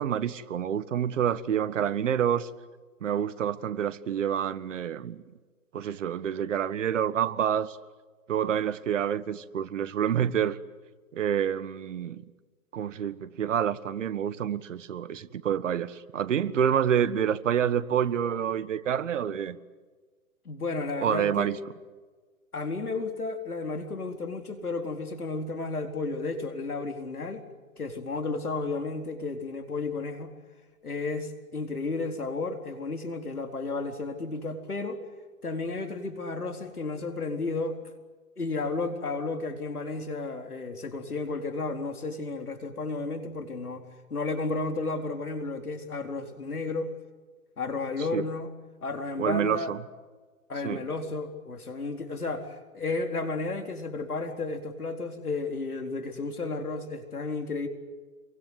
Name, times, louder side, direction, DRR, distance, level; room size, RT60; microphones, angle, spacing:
voice 1, 0.0-2.5 3.0-5.2 5.7-7.8 8.3-10.6 11.1-12.2 12.7-19.6 21.0-21.6 48.1-48.2 49.2-49.8 50.6-50.8, right 9 dB, 55° right, 1.6 m, -28 dB
voice 2, 20.4-21.5 22.5-27.4 27.8-30.3 30.8-35.0 35.4-37.8 38.4-43.9 44.1-46.9 47.6-48.5 48.8-49.7 50.5-57.7, left 3 dB, 90° left, 4.3 m, -32 dB
28.0 x 23.5 x 8.1 m
hypercardioid pair, 135°, 43 cm